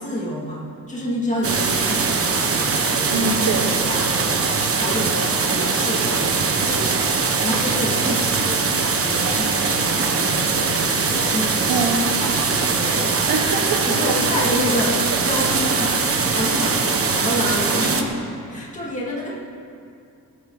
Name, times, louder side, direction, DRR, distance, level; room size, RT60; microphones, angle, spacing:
voice 1, 0.0-3.3 3.7-8.7 9.0-11.8 12.2-13.4 13.9-18.2 18.5-19.3, equal, 20° left, -5 dB, 2.4 m, -28 dB
sound 1, 1.4-18.0, right 4 dB, 40° right, 1.3 m, -21 dB
voice 2, 3.1-3.7 11.7-12.0 13.3-13.8, right 4 dB, 90° right, 0 dB, 1.3 m, -23 dB
26.5 x 9.4 x 4.1 m, 2.6 s
cardioid pair, 120°, 34 cm